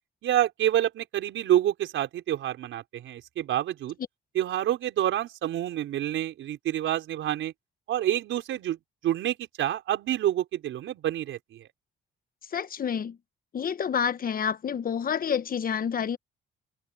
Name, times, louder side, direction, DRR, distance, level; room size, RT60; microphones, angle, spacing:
voice 1, 0.2-4.0 4.3-7.5 7.9-8.8 9.0-11.7, right 12 dB, 80° right, 4.6 m, -28 dB
voice 2, 12.5-13.2 13.5-16.2, left 7 dB, 45° left, 1.1 m, -28 dB
cardioid pair, 90°, 20 cm